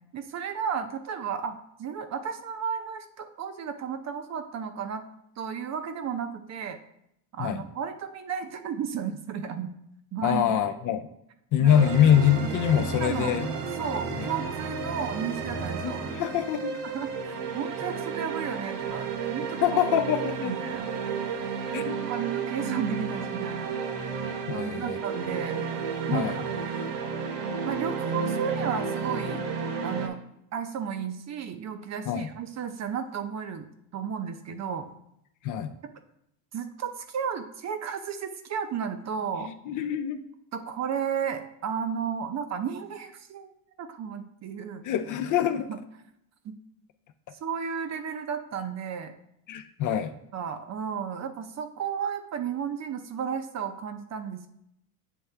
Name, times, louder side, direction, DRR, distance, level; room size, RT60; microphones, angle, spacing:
voice 1, 0.1-5.0 5.4-6.8 7.3-9.7 10.1-10.6 11.6-11.9 13.0-13.3 13.8-16.0 16.8-19.6 20.4-20.9 21.7-23.7 24.5-25.6 26.1-26.3 27.7-29.4 29.8-30.2 30.5-33.7 33.9-34.9 36.5-39.5 40.5-43.5 43.8-44.8 45.7-45.8 46.4-46.6 47.4-49.1 50.3-54.5, right 7 dB, 35° right, 8 dB, 0.6 m, -33 dB
voice 2, 10.2-11.1 11.5-13.5 14.1-14.3 15.8-16.8 19.6-20.6 21.7-22.0 24.5-25.2 26.1-26.4 32.1-32.3 35.4-35.7 39.7-40.2 44.8-45.7 49.5-50.1, left 9 dB, 45° left, 8 dB, 0.5 m, -25 dB
sound 1, 11.7-30.1, right 5 dB, 60° right, 1.1 m, -32 dB
8.3 x 3.4 x 3.3 m, 0.77 s
supercardioid pair, 105°, 47 cm